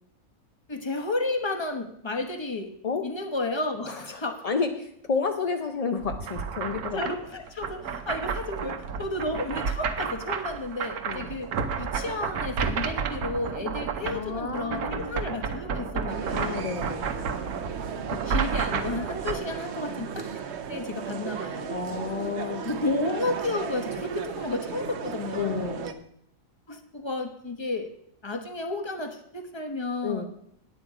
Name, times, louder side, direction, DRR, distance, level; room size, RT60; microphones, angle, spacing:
voice 1, 0.7-2.7 3.0-4.4 6.9-16.7 18.1-20.3 20.7-21.9 22.4-25.8 26.7-27.9 28.2-30.2, left 2 dB, 20° left, 6 dB, 0.9 m, -32 dB
voice 2, 3.9-7.0 11.1-11.3 14.0-15.2 16.3-17.1 21.7-22.6 25.3-26.0 30.0-30.2, left 5 dB, 50° left, 5 dB, 0.4 m, -31 dB
sound 1, 6.0-19.4, right 6 dB, 80° right, 1.3 m, -31 dB
sound 2, 16.1-25.9, right 7 dB, 55° right, 0.9 m, -35 dB
9.5 x 9.0 x 4.8 m, 0.70 s
omnidirectional pair, 1.6 m